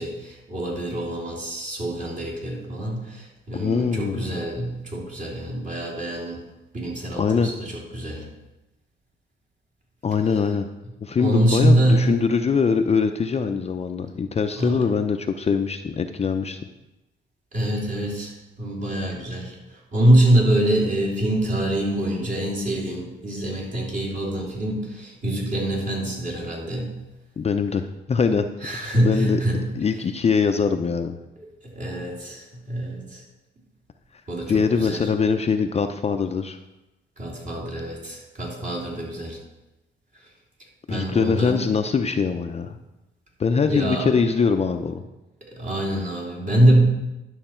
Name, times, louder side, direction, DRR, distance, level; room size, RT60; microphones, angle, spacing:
voice 1, 0.0-6.4 6.7-8.2 11.2-12.1 14.6-14.8 17.5-26.9 28.6-29.6 31.4-31.5 31.7-33.2 34.3-35.1 37.2-39.4 40.9-41.6 43.7-44.1 45.5-46.8, right 1 dB, 40° right, -2 dB, 3.2 m, -24 dB
voice 2, 3.5-4.2 7.2-7.5 10.0-10.7 11.0-16.6 27.4-28.5 29.0-29.4 29.8-31.2 34.5-36.6 40.9-42.8 43.4-45.0, left 5 dB, 30° left, 7 dB, 0.6 m, -22 dB
11.0 x 6.4 x 4.4 m, 1.0 s
cardioid pair, 90°, 20 cm